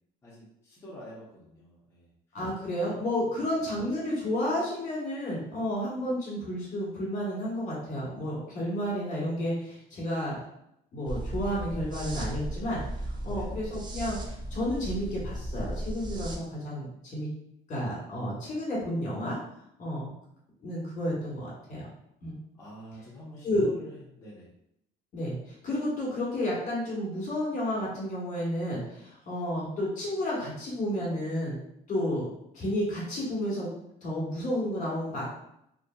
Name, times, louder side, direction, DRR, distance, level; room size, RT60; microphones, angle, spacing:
voice 1, 0.2-2.4 3.4-3.7 13.2-13.7 21.3-21.8 22.6-24.5, equal, 15° left, -7 dB, 0.7 m, -48 dB
voice 2, 2.3-10.4 10.9-12.8 13.2-14.2 14.5-17.3 17.7-19.4 19.8-20.1 20.6-21.9 22.2-22.3 23.4-23.7 25.1-31.6 31.9-32.3 32.5-33.7 34.0-35.2, left 1 dB, 50° left, -5 dB, 1.4 m, -31 dB
sound 1, 11.1-16.4, right 1 dB, 25° right, 0.4 m, -36 dB
2.6 x 2.5 x 2.4 m, 0.76 s
cardioid pair, 110°, 17 cm